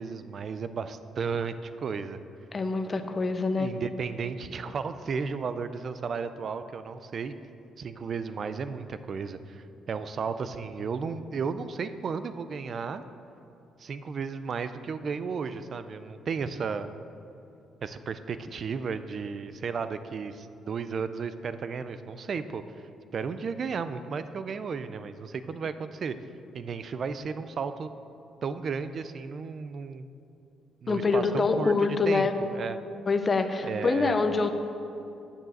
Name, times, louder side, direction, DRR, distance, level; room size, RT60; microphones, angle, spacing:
voice 1, 0.0-2.2 3.5-7.3 7.8-13.0 13.8-16.9 17.8-22.6 23.1-26.1 26.5-27.9 28.4-30.0 30.8-32.8 33.6-34.2, right 5 dB, 45° right, 12 dB, 0.5 m, -34 dB
voice 2, 2.5-3.8 30.9-32.3 33.1-34.5, left 4 dB, 25° left, 8 dB, 0.7 m, -25 dB
8.9 x 6.6 x 7.9 m, 2.7 s
cardioid pair, 140°, 0 cm